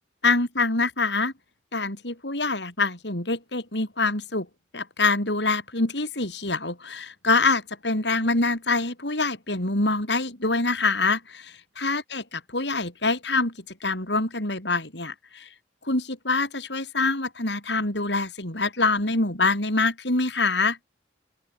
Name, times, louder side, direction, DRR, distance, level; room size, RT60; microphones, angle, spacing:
voice 1, 0.2-1.3 1.7-4.5 4.7-12.2 12.5-13.5 13.8-15.5 15.8-20.8, left 3 dB, 70° left, 6.6 m, -25 dB
open air
head